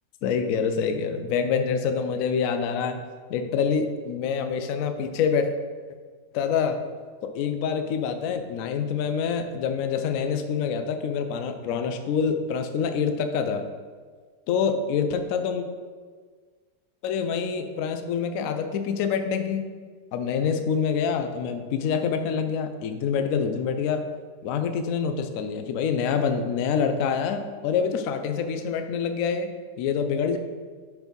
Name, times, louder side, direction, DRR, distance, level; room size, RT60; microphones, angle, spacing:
voice 1, 0.2-3.0 3.3-5.5 6.3-6.8 7.2-13.6 14.5-15.6 17.0-19.7 20.1-24.1 24.4-30.4, left 6 dB, 75° left, 8 dB, 0.8 m, -26 dB
4.4 x 4.2 x 5.2 m, 1.6 s
omnidirectional pair, 1.9 m